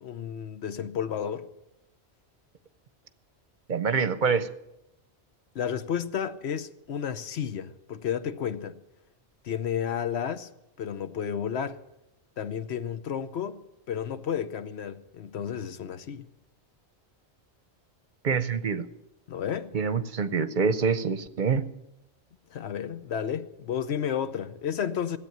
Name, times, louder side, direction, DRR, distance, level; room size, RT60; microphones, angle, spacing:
voice 1, 0.0-1.5 5.5-8.8 9.4-10.5 10.8-11.8 12.4-16.3 19.3-19.7 22.5-25.2, left 8 dB, 75° left, 1.1 m, -32 dB
voice 2, 3.7-4.5 18.2-18.9 19.7-21.7, right 5 dB, 50° right, 0.8 m, -26 dB
16.0 x 8.5 x 9.2 m
omnidirectional pair, 1.1 m